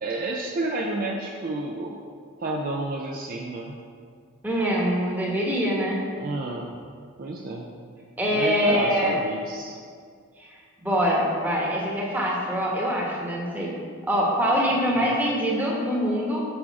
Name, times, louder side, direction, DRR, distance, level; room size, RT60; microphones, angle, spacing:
voice 1, 0.0-2.0 2.4-3.8 6.1-6.7 7.2-7.7 8.3-9.8 14.9-15.1, right 2 dB, 40° right, 0 dB, 0.4 m, -30 dB
voice 2, 4.4-6.0 8.2-9.1 10.4-10.5 10.8-13.7 14.1-16.5, equal, 10° right, -4 dB, 1.1 m, -24 dB
6.1 x 4.8 x 4.6 m, 2.1 s
head